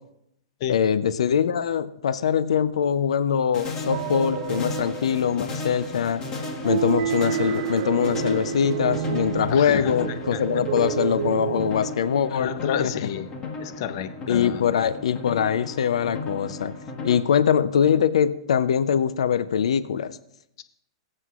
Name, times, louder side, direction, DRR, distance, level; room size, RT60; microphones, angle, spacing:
voice 1, 0.7-6.2 6.6-12.5 12.8-13.1 14.3-16.7 17.0-20.2, left 8 dB, 90° left, 14 dB, 0.5 m, -23 dB
sound 1, 3.5-17.2, left 3 dB, 20° left, 1.4 m, -36 dB
sound 2, 3.9-11.7, right 10 dB, 40° right, 0.5 m, -30 dB
voice 2, 9.5-10.4 12.3-13.3 13.6-14.6, left 10 dB, 45° left, 11 dB, 0.6 m, -30 dB
22.0 x 7.7 x 2.4 m, 0.76 s
hypercardioid pair, 160°, 3 cm